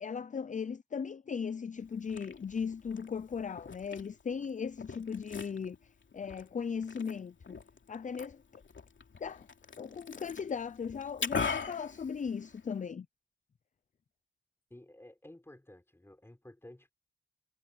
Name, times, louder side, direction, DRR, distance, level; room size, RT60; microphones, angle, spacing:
voice 1, 0.0-5.8 6.1-7.6 7.9-8.6 9.2-9.5 9.8-13.1, left 6 dB, 40° left, 0.4 m, -37 dB
Liquid, 1.8-12.8, left 5 dB, 70° left, 2.7 m, -42 dB
voice 2, 14.7-16.9, left 1 dB, 10° left, 4.3 m, -53 dB
wide cardioid pair, 130°, 20 cm